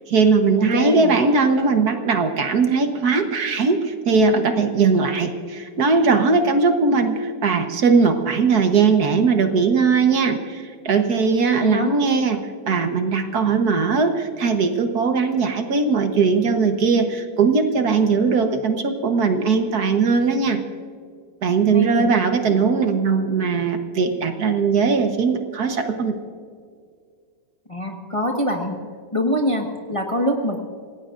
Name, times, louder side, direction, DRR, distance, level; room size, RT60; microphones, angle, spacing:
voice 1, 0.1-20.6 21.4-26.1, right 4 dB, 60° right, 5 dB, 1.6 m, -19 dB
voice 2, 0.7-1.2 11.6-11.9 21.7-22.1 27.7-28.8 29.1-30.6, left 1 dB, 20° left, 1 dB, 1.3 m, -24 dB
27.0 x 17.5 x 2.5 m, 2.1 s
omnidirectional pair, 1.9 m